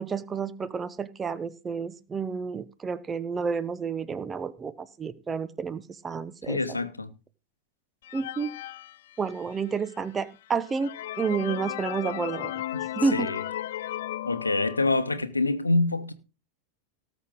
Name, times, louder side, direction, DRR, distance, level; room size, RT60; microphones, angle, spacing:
voice 1, 0.0-6.6 8.1-8.5 9.2-12.6 13.0-13.3, right 5 dB, 20° right, 0.8 m, -30 dB
voice 2, 6.4-7.1 12.7-12.8 13.1-13.4 14.2-16.1, left 2 dB, 80° left, 1.0 m, -26 dB
sound 1, 8.0-9.7 10.2-10.3 10.7-15.2, left 13 dB, 55° left, 0.5 m, -35 dB
18.0 x 7.2 x 3.7 m
figure-of-eight pair, 90°, 0 cm